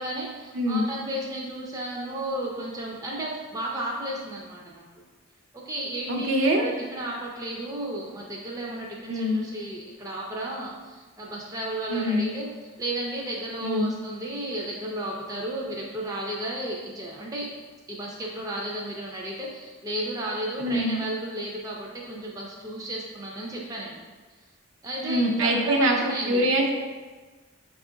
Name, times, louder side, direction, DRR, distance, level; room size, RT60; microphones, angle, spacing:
voice 1, 0.0-4.9 5.5-12.5 12.8-17.5 17.9-24.0 24.8-26.4, right 1 dB, 15° right, -3 dB, 0.4 m, -33 dB
voice 2, 0.5-0.9 6.1-6.7 9.1-9.4 11.9-12.3 13.6-13.9 20.6-21.0 25.0-26.0 26.3-26.7, equal, 60° right, 0 dB, 0.6 m, -24 dB
5.7 x 2.4 x 3.8 m, 1.3 s
head